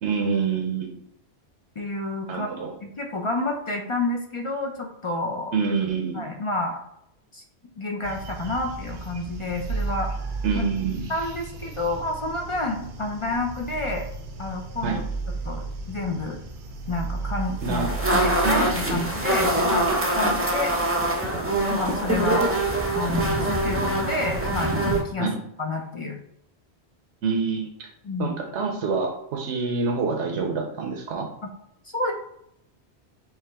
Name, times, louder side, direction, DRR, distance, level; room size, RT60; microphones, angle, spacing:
voice 1, 0.0-1.0 2.3-2.7 5.5-6.3 10.4-11.0 14.8-15.0 17.6-17.9 18.4-19.0 20.2-20.4 25.2-25.4 27.2-27.9 28.2-31.3, right 5 dB, 85° right, 1 dB, 1.0 m, -26 dB
voice 2, 1.8-2.5 2.8-5.5 6.1-6.8 7.3-7.4 7.8-10.1 11.1-14.1 14.4-15.0 15.4-16.4 16.9-17.8 18.1-19.9 20.2-20.7 21.7-22.5 22.9-25.3 25.6-26.2 28.0-28.4 31.9-32.1, left 2 dB, 45° left, 2 dB, 0.4 m, -29 dB
sound 1, 8.0-19.9, right 3 dB, 55° right, 0.7 m, -34 dB
sound 2, 17.6-25.0, right 1 dB, 15° right, 0.5 m, -24 dB
4.7 x 3.1 x 3.4 m, 0.75 s
omnidirectional pair, 1.1 m